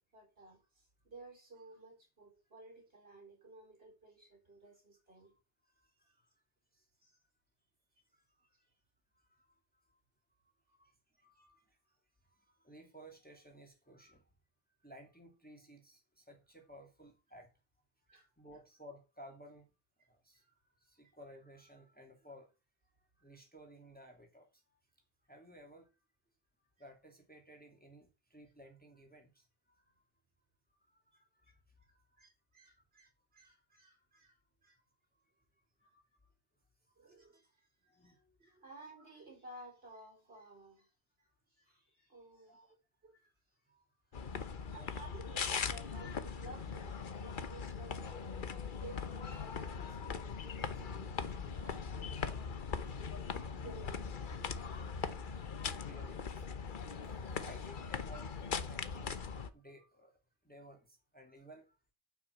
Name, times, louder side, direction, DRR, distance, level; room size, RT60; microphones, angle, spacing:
voice 1, 0.0-5.3 7.0-7.2 10.7-10.9 18.1-18.3 20.3-20.4 31.1-31.5 32.2-34.8 37.0-40.9 41.5-42.7 43.0-44.4 44.7-53.3 53.6-54.7 55.3-55.9, right 2 dB, 60° right, 5.8 m, -56 dB
voice 2, 5.6-6.4 6.7-6.9 8.1-8.6 9.1-10.0 10.8-14.3 14.8-17.5 18.4-19.7 20.1-22.5 23.2-24.8 25.3-26.0 26.8-29.9 30.8-32.2 35.2-35.4 35.8-36.3 36.8-37.3 37.9-38.3 41.2-41.3 42.5-42.8 55.5-56.4 57.0-61.8, equal, 10° left, 2.8 m, -58 dB
sound 1, 44.1-59.5, left 5 dB, 50° left, 1.0 m, -40 dB
9.9 x 6.1 x 8.1 m
omnidirectional pair, 1.1 m